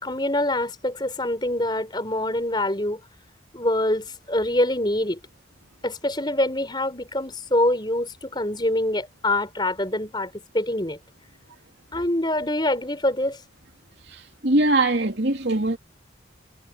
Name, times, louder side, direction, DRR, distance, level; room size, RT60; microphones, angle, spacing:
voice 1, 0.0-3.0 3.5-5.2 5.8-11.0 11.9-13.4, left 1 dB, 25° left, 5.0 m, -25 dB
voice 2, 14.1-15.8, right 2 dB, 60° right, 3.0 m, -22 dB
head